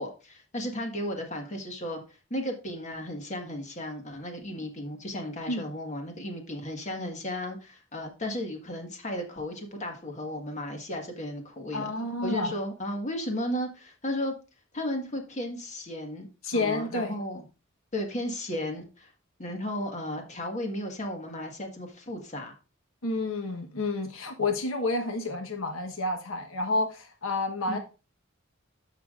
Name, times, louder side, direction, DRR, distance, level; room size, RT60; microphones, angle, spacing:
voice 1, 0.0-2.0 2.3-11.9 12.2-14.3 14.7-17.4 17.9-19.1 19.4-22.5 27.7-27.8, left 1 dB, 35° left, 1.6 m, -34 dB
voice 2, 11.7-12.5 16.4-17.1 23.0-27.8, left 2 dB, 80° left, 1.2 m, -30 dB
13.0 x 5.8 x 2.5 m
head